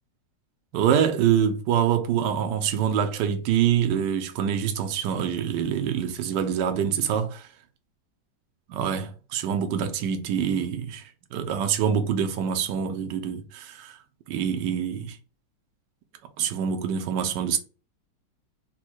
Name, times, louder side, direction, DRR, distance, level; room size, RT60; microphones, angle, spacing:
voice 1, 0.7-7.5 8.7-11.0 11.3-14.0 14.3-15.2 16.4-17.6, right 8 dB, 75° right, 1.3 m, -25 dB
4.3 x 2.3 x 4.4 m
omnidirectional pair, 1.9 m